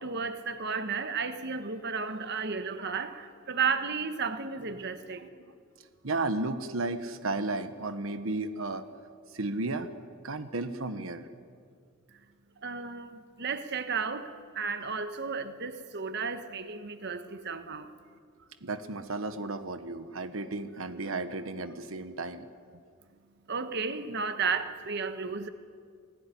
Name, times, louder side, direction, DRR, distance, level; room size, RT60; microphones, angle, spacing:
voice 1, 0.0-5.3 12.6-17.9 23.5-25.5, right 5 dB, 55° right, 1.4 m, -33 dB
voice 2, 6.0-8.8 9.3-9.9 10.2-11.3 18.6-22.4, right 2 dB, 85° right, 1.2 m, -33 dB
28.0 x 18.5 x 10.0 m
head